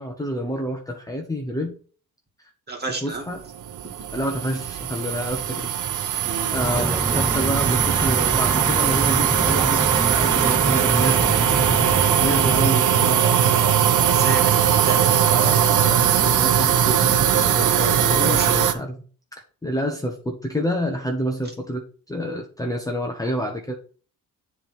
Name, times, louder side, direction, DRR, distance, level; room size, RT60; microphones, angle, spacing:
voice 1, 0.0-1.8 2.4-2.5 3.0-3.4 4.1-5.7 6.5-11.3 12.2-14.1 15.2-19.0 19.6-23.7, equal, 10° left, 1 dB, 1.1 m, -28 dB
voice 2, 2.7-3.2 6.2-6.5 14.1-15.1 17.6-18.7, right 3 dB, 30° right, 1 dB, 2.3 m, -31 dB
sound 1, 3.6-18.7, right 9 dB, 60° right, 0.9 m, -20 dB
sound 2, 6.5-12.7, right 2 dB, 5° right, 0.3 m, -26 dB
7.3 x 3.6 x 5.9 m, 0.40 s
cardioid pair, 100°, 35 cm